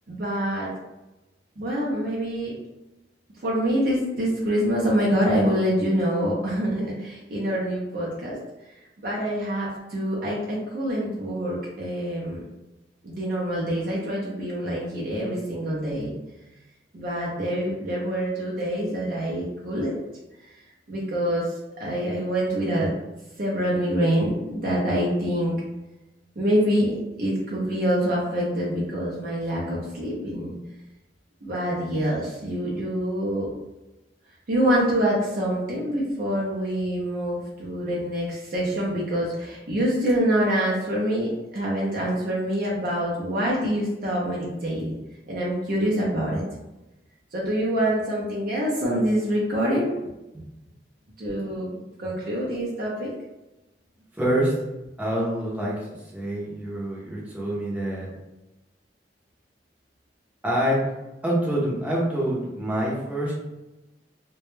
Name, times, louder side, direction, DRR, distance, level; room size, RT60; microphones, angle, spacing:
voice 1, 0.1-0.7 1.6-2.5 3.4-8.4 9.0-12.4 13.0-16.1 16.9-20.0 20.4-20.5 20.9-21.5 21.8-22.9 23.4-25.6 26.4-30.5 31.4-33.5 34.5-45.0 45.3-46.4 47.3-50.0 51.2-53.1, equal, 55° right, -5 dB, 0.5 m, -25 dB
voice 2, 54.2-54.5 55.0-58.1 60.4-60.8 61.2-63.3, right 1 dB, 10° right, -6 dB, 0.6 m, -26 dB
2.2 x 2.0 x 3.0 m, 1.0 s
head